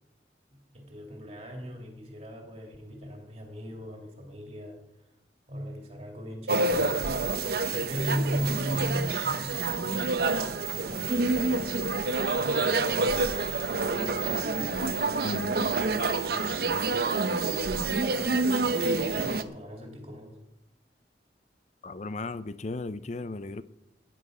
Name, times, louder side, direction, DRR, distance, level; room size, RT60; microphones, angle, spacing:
voice 1, 0.5-5.2 5.5-7.0 7.3-11.9 12.3-15.3 15.6-17.0 17.4-20.4, equal, 35° right, 2 dB, 2.3 m, -39 dB
sound 1, 6.5-19.4, right 3 dB, 55° right, 0.8 m, -27 dB
voice 2, 15.2-15.7 21.8-23.6, left 2 dB, 40° left, 14 dB, 0.5 m, -35 dB
17.0 x 10.0 x 5.0 m, 0.92 s
head